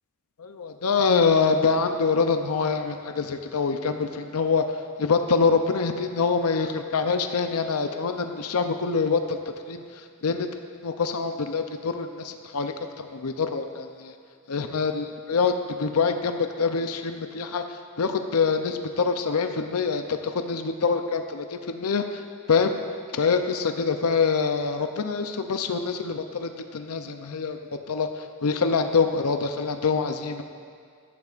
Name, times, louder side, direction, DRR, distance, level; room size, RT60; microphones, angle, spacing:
voice 1, 0.4-4.6 5.0-9.4 9.7-9.8 10.2-10.5 10.8-14.1 14.5-17.6 18.0-22.2 22.5-22.8 23.1-27.6 27.9-28.1 28.4-30.4, left 5 dB, 80° left, 7 dB, 0.6 m, -25 dB
15.5 x 12.0 x 2.5 m, 2.2 s
head